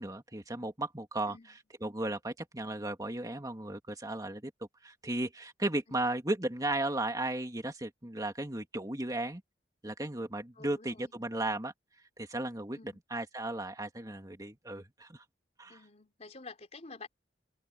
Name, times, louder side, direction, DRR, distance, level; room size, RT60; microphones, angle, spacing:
voice 1, 0.0-1.4 1.8-4.5 4.8-9.4 9.8-11.7 12.2-15.2 15.6-15.8, right 2 dB, 20° right, 2.3 m, -35 dB
voice 2, 1.3-1.6 5.9-6.1 10.6-11.1 12.7-13.0 15.7-17.1, left 3 dB, 40° left, 4.2 m, -49 dB
head